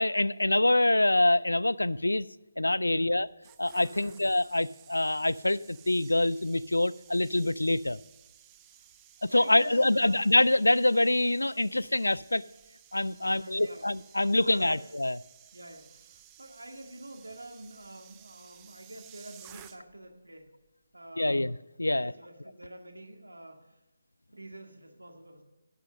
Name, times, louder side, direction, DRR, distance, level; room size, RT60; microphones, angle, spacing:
voice 1, 0.0-2.3 2.6-3.3 3.6-8.0 9.2-12.4 12.9-15.2 21.2-22.1, left 1 dB, 80° left, 20 dB, 0.3 m, -25 dB
voice 2, 2.8-3.1 3.9-4.2 8.7-8.8 9.3-10.3 13.2-13.9 14.4-14.8 15.5-20.5 20.9-21.5 21.9-23.8 24.3-25.4, right 1 dB, 80° right, 3 dB, 1.9 m, -46 dB
sound 1, 3.2-20.1 20.4-20.7, right 11 dB, 15° right, 0.5 m, -56 dB
11.0 x 6.3 x 6.5 m, 1.0 s
figure-of-eight pair, 150°, 0 cm